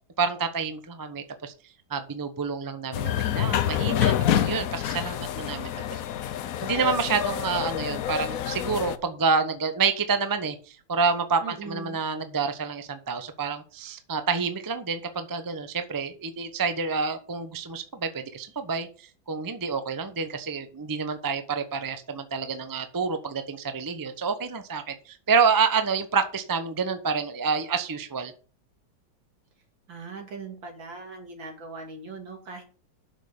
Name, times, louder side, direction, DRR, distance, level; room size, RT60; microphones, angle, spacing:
voice 1, 0.2-1.5 1.9-6.0 6.6-18.9 19.3-28.3, right 5 dB, 25° right, 9 dB, 0.4 m, -28 dB
sound 1, 2.9-9.0, left 10 dB, 65° left, 0.9 m, -27 dB
voice 2, 11.4-12.0 29.9-32.6, right 4 dB, 75° right, 2 dB, 3.3 m, -40 dB
7.2 x 6.4 x 7.0 m, 0.39 s
omnidirectional pair, 2.1 m